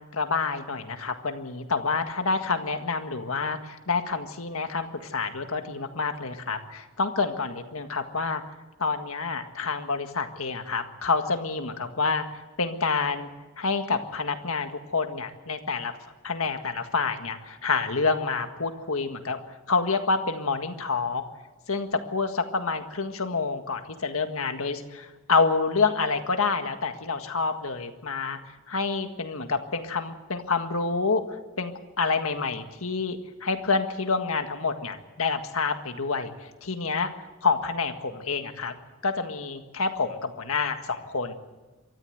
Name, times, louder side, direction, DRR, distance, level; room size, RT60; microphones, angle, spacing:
voice 1, 0.0-8.4 8.8-13.3 13.6-15.9 16.2-19.4 19.7-21.2 21.7-28.4 28.7-31.2 31.6-31.7 32.0-37.1 37.4-38.7 39.0-41.3, left 4 dB, 70° left, 7 dB, 1.7 m, -28 dB
23.5 x 14.0 x 8.0 m, 1.2 s
head